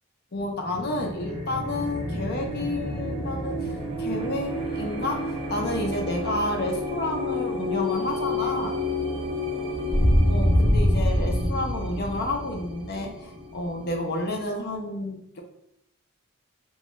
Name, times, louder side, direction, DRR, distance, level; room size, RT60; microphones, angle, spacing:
voice 1, 0.3-8.8 10.3-15.4, left 2 dB, 50° left, 2 dB, 0.6 m, -30 dB
sound 1, 0.6-14.1, left 1 dB, 25° right, 0.6 m, -27 dB
3.0 x 2.3 x 3.0 m, 0.77 s
head